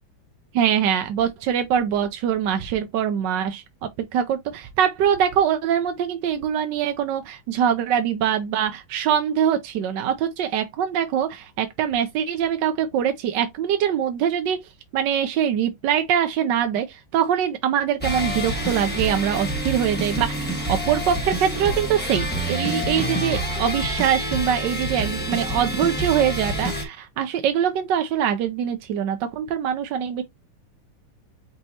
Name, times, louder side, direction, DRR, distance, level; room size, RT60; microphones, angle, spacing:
voice 1, 0.5-14.6 14.9-30.2, right 9 dB, 70° right, 1.1 m, -23 dB
sound 1, 18.0-26.9, right 1 dB, 5° left, 0.9 m, -27 dB
5.4 x 2.9 x 2.8 m
omnidirectional pair, 2.3 m